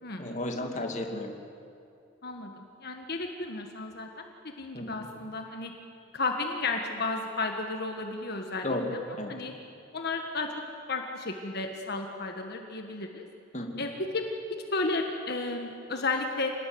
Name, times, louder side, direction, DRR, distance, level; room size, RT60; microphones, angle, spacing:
voice 1, 0.2-1.3 4.7-5.1 8.6-9.4 13.5-13.9, left 1 dB, 35° left, 3 dB, 2.5 m, -33 dB
voice 2, 2.2-5.7 6.1-9.0 9.3-9.5 9.9-10.5 10.9-13.2 13.8-16.5, left 3 dB, 50° left, 3 dB, 1.7 m, -33 dB
27.0 x 19.0 x 9.5 m, 2.6 s
head